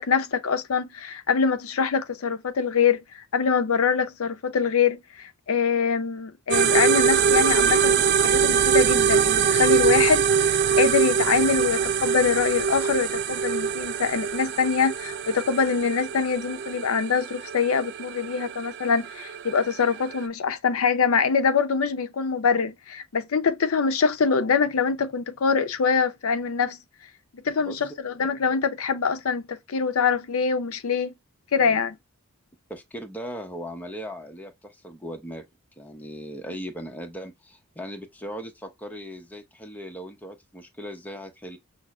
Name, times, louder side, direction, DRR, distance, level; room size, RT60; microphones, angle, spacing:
voice 1, 0.0-3.0 3.3-26.8 27.4-31.1 31.5-32.0, left 5 dB, 70° left, 0.6 m, -24 dB
sound 1, 6.5-20.2, right 7 dB, 50° right, 0.3 m, -23 dB
voice 2, 32.7-35.4 35.8-41.6, equal, 10° left, 0.7 m, -38 dB
6.0 x 2.0 x 2.3 m
head